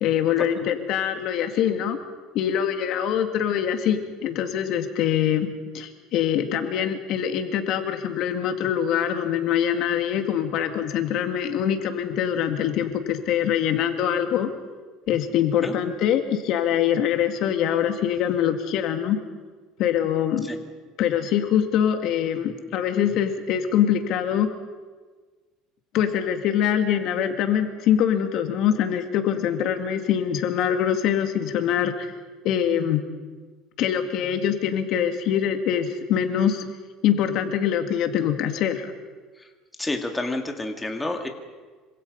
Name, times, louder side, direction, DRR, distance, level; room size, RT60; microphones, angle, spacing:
voice 1, 0.0-2.0 2.3-14.5 15.1-19.2 19.8-20.5 21.0-24.5 25.9-32.1 32.4-33.0 33.8-36.7 37.0-38.9, left 9 dB, 55° left, 7 dB, 2.2 m, -24 dB
voice 2, 39.8-41.3, left 2 dB, 10° left, 4 dB, 2.1 m, -28 dB
26.5 x 25.5 x 5.4 m, 1.4 s
cardioid pair, 135°, 0 cm